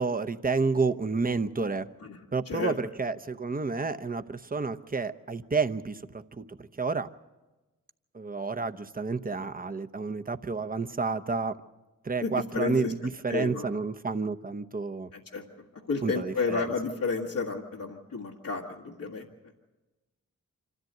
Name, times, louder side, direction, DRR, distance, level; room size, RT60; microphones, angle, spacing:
voice 1, 0.0-1.9 2.3-7.1 8.1-11.6 12.0-15.1 16.0-16.7, right 4 dB, 25° right, 10 dB, 0.9 m, -30 dB
voice 2, 12.2-12.9 13.3-13.7 15.1-15.4 15.9-19.3, left 4 dB, 80° left, -4 dB, 1.7 m, -31 dB
26.0 x 13.5 x 7.9 m, 1.1 s
cardioid pair, 45°, 33 cm